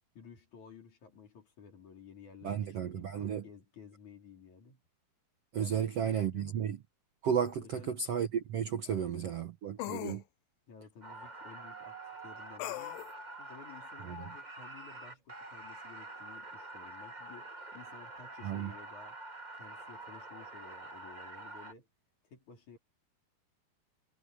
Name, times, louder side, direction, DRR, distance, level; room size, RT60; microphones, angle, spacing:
voice 1, 0.1-4.8 5.6-6.6 7.6-8.0 8.8-9.4 10.7-13.0 13.4-19.2 19.5-21.9 22.2-22.8, left 6 dB, 50° left, 5.0 m, -54 dB
voice 2, 2.4-3.4 5.5-6.8 7.2-10.2 14.0-14.2 18.4-18.7, right 8 dB, 90° right, 1.3 m, -33 dB
sound 1, 7.5-7.6 9.8-10.2 12.6-13.1, left 16 dB, 75° left, 2.3 m, -39 dB
sound 2, 11.0-21.7, right 2 dB, 30° right, 0.8 m, -47 dB
omnidirectional pair, 4.6 m